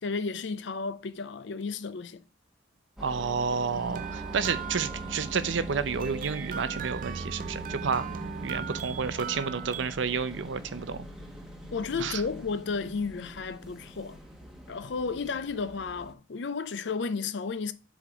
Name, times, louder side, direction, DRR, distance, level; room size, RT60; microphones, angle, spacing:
voice 1, 0.0-2.2 11.7-14.2 14.7-17.7, left 4 dB, 70° left, 0.5 m, -33 dB
sound 1, 3.0-16.1, equal, ahead, 1.1 m, -42 dB
voice 2, 3.0-8.0 8.4-11.1 12.0-12.2, right 5 dB, 90° right, 0.6 m, -30 dB
sound 2, 3.7-10.0, right 7 dB, 50° right, 0.4 m, -38 dB
4.9 x 4.2 x 5.9 m
head